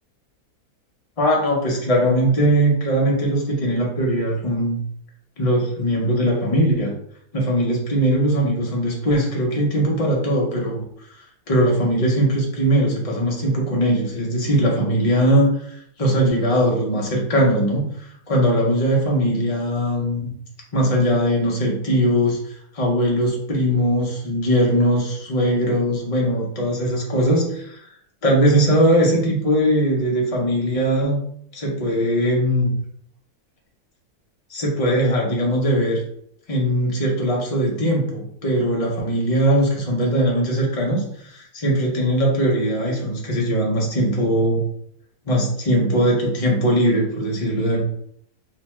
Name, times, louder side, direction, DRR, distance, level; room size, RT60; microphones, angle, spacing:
voice 1, 1.2-4.8 5.4-6.9 7.3-11.1 11.5-20.3 20.7-27.8 28.2-31.2 31.5-32.7 34.5-36.0 36.5-44.7 45.3-47.8, equal, 70° left, -2 dB, 0.3 m, -20 dB
2.8 x 2.2 x 2.9 m, 0.68 s
omnidirectional pair, 1.7 m